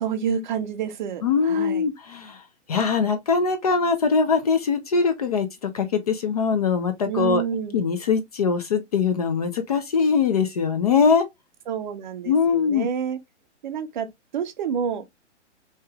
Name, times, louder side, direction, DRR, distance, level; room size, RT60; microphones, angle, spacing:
voice 1, 0.0-1.9 7.1-7.8 11.7-13.2 13.6-14.1 14.3-15.0, right 7 dB, 40° right, 0.5 m, -28 dB
voice 2, 1.2-2.4 2.7-7.4 7.7-11.3 12.3-12.9, left 5 dB, 35° left, 0.4 m, -22 dB
3.2 x 2.8 x 2.2 m
hypercardioid pair, 140°, 36 cm